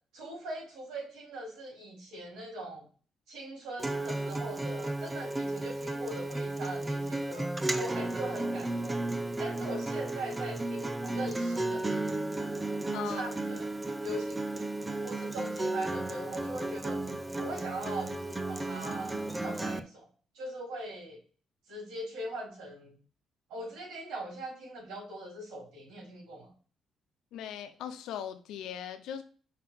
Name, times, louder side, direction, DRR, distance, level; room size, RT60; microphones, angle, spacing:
voice 1, 0.1-2.8 3.3-7.5 7.7-9.0 9.4-12.0 13.1-13.7 14.0-14.7 15.0-17.0 17.4-20.1 20.3-21.2 21.7-23.0 23.5-26.5, right 1 dB, 90° right, 3.9 m, -41 dB
Acoustic guitar, 3.8-19.8, right 2 dB, 15° right, 0.6 m, -34 dB
voice 2, 12.9-13.3 27.3-29.2, left 9 dB, 90° left, 0.9 m, -39 dB
5.6 x 3.8 x 5.9 m
cardioid pair, 90°, 0 cm